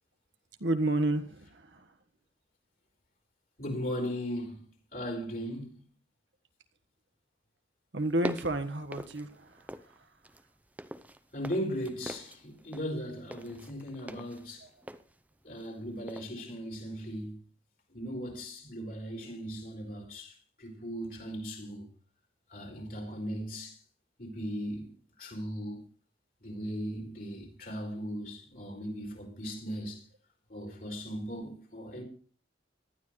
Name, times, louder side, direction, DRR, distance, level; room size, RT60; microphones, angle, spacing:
voice 1, 0.6-1.9 7.9-10.1 14.6-14.7, right 1 dB, 85° right, 1.5 m, -31 dB
voice 2, 3.6-4.6 4.9-5.9 11.3-14.7 15.4-17.4 17.9-21.8 22.5-23.8 24.2-24.9 25.2-25.8 26.4-30.0 30.5-32.0, equal, 50° left, 4.6 m, -38 dB
sound 1, 8.0-10.0 10.2-15.8 16.1-16.3, right 1 dB, 10° right, 0.7 m, -42 dB
19.0 x 12.5 x 3.2 m
head